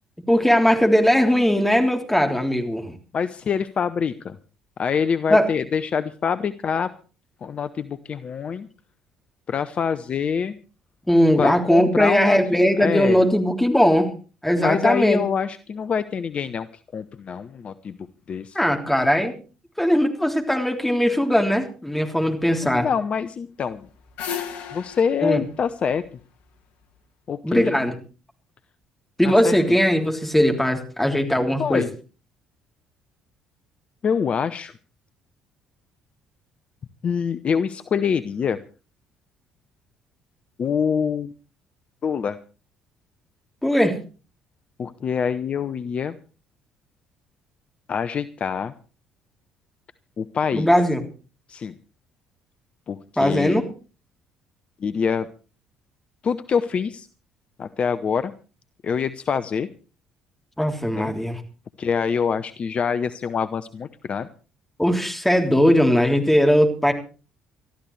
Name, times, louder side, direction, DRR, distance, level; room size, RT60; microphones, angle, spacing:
voice 1, 0.3-2.9 5.3-5.5 11.1-14.1 14.4-15.2 18.5-19.3 19.8-22.9 25.2-25.4 27.4-27.9 29.2-31.8 43.6-44.0 50.5-51.0 53.2-53.6 60.6-61.4 64.8-66.9, equal, 5° left, 3 dB, 3.4 m, -19 dB
voice 2, 3.1-4.4 4.8-6.9 7.4-8.7 9.5-10.6 11.4-12.4 12.8-13.2 14.6-16.7 16.9-18.0 18.3-18.6 22.6-23.9 24.7-26.0 27.3-27.7 29.2-29.8 31.6-31.9 34.0-34.7 37.0-38.6 40.6-41.3 42.0-42.4 44.8-46.2 47.9-48.7 50.2-50.7 51.5-51.8 52.9-53.6 54.8-55.3 56.2-57.1 57.6-58.3 58.8-59.7 60.9-61.1 61.8-64.3, left 6 dB, 40° left, 12 dB, 0.7 m, -25 dB
sound 1, 23.7-26.8, left 8 dB, 65° left, 1.4 m, -35 dB
24.5 x 13.5 x 3.2 m, 0.35 s
figure-of-eight pair, 50°, 3 cm